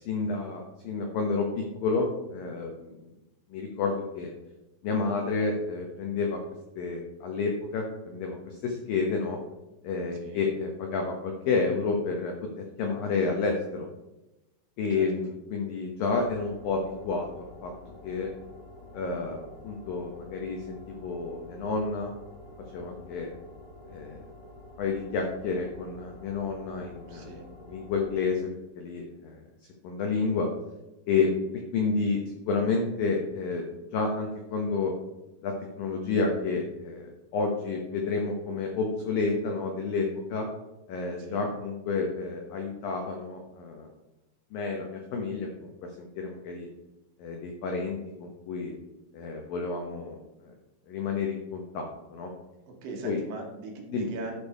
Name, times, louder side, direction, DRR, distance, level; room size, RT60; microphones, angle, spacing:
voice 1, 0.0-2.9 3.5-4.3 4.8-6.4 6.8-9.4 9.8-13.9 14.8-17.7 18.0-18.3 18.9-22.1 22.7-23.3 23.9-24.2 24.8-27.3 27.6-28.5 28.8-29.4 29.8-30.5 31.1-31.4 31.7-32.2 32.5-33.7 33.9-34.9 35.4-40.5 40.9-43.9 44.5-46.7 47.2-48.7 49.1-50.5 50.9-52.3 53.0-53.2 53.9-54.1, left 4 dB, 90° left, 2 dB, 1.9 m, -30 dB
sound 1, 16.0-28.3, left 2 dB, 45° left, 4.2 m, -48 dB
voice 2, 27.1-27.5 41.2-41.5 52.7-54.4, right 3 dB, 75° right, 1 dB, 3.7 m, -40 dB
11.0 x 5.4 x 4.6 m, 0.99 s
omnidirectional pair, 5.6 m